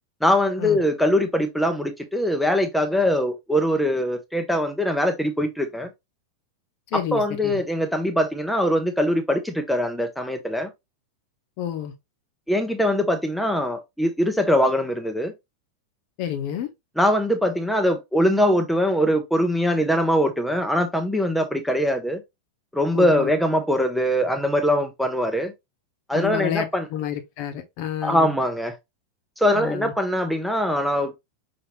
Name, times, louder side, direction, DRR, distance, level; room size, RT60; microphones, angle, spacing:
voice 1, 0.2-5.9 6.9-10.7 12.5-15.3 17.0-22.2 22.7-25.5 26.1-26.9 28.0-28.8 29.4-31.1, equal, ahead, 0.7 m, -22 dB
voice 2, 6.9-7.6 11.6-11.9 16.2-16.7 22.9-23.3 26.1-28.3 29.5-29.9, left 10 dB, 45° left, 0.9 m, -29 dB
5.6 x 2.9 x 2.9 m
figure-of-eight pair, 90°, 0 cm